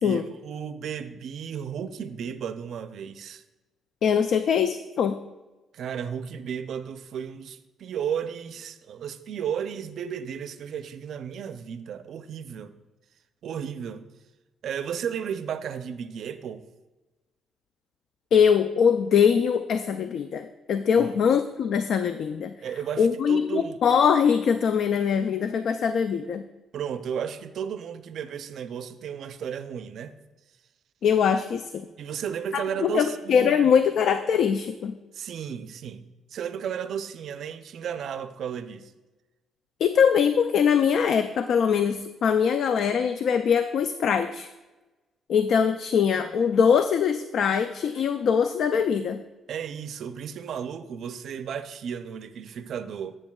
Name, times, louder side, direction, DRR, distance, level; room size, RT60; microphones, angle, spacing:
voice 1, 0.0-3.4 5.7-12.8 13.4-14.1 14.6-16.6 21.0-21.1 22.6-23.8 26.7-30.1 32.0-33.7 35.1-38.9 49.5-53.2, right 8 dB, 70° right, 0.5 m, -34 dB
voice 2, 4.0-5.2 18.3-22.5 23.0-26.4 31.0-31.8 32.5-34.9 39.8-44.5 45.3-49.2, left 7 dB, 70° left, 0.3 m, -22 dB
10.5 x 8.0 x 2.3 m
cardioid pair, 90°, 0 cm